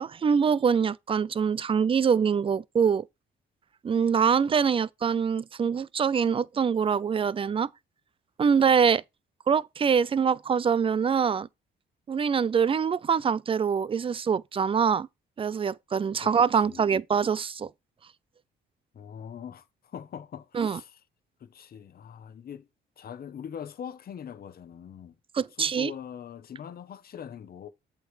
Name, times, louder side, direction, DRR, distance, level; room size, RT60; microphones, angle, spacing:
voice 1, 0.0-3.0 3.8-7.7 8.4-9.0 9.5-11.5 12.1-15.1 15.4-17.7 20.5-20.8 25.3-25.9, right 6 dB, 30° right, 0.4 m, -24 dB
voice 2, 16.2-16.8 18.9-21.0 21.4-22.7 23.0-25.1 25.6-27.7, left 8 dB, 50° left, 0.9 m, -42 dB
7.9 x 3.2 x 4.9 m
cardioid pair, 90°, 20 cm